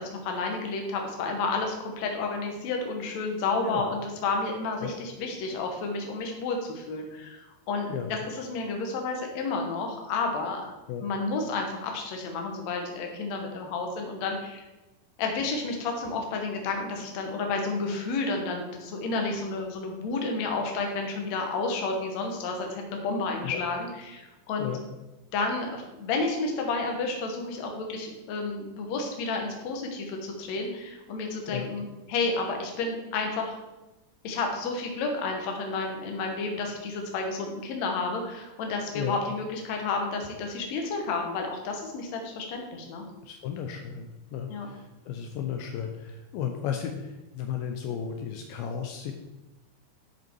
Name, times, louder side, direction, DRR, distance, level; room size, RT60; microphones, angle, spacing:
voice 1, 0.0-10.6 11.0-14.6 15.2-24.7 25.3-33.6 34.2-43.0 44.5-44.7, left 3 dB, 60° left, 2 dB, 2.1 m, -31 dB
voice 2, 43.2-49.1, left 8 dB, 80° left, 4 dB, 2.3 m, -34 dB
10.5 x 5.1 x 4.6 m, 1.0 s
omnidirectional pair, 4.3 m